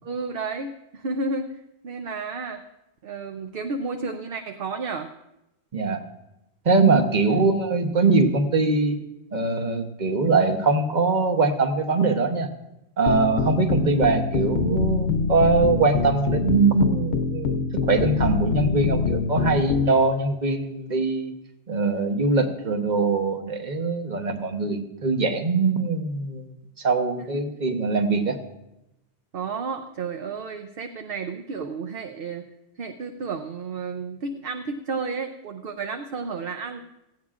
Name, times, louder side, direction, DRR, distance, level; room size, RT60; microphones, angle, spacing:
voice 1, 0.0-2.6 3.0-5.1 7.3-7.5 27.2-27.4 29.3-32.5 32.8-36.8, right 4 dB, 60° right, 6 dB, 0.8 m, -32 dB
voice 2, 6.6-9.0 9.3-12.5 13.0-21.3 21.7-26.5 26.8-28.4, right 3 dB, 40° right, 6 dB, 1.1 m, -22 dB
sound 1, 13.1-19.9, left 5 dB, 70° left, 0.9 m, -25 dB
17.0 x 15.5 x 2.5 m, 0.90 s
omnidirectional pair, 1.2 m